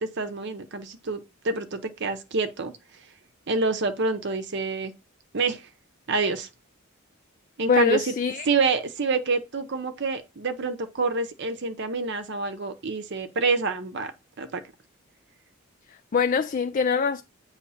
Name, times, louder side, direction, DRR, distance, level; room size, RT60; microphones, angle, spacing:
voice 1, 0.0-2.7 3.5-4.9 5.3-5.7 6.1-6.5 7.6-8.1 8.5-14.1 14.4-14.6, right 4 dB, 55° right, 0.7 m, -27 dB
voice 2, 7.7-8.5 16.1-17.2, left 6 dB, 40° left, 0.3 m, -23 dB
8.6 x 3.2 x 5.6 m
head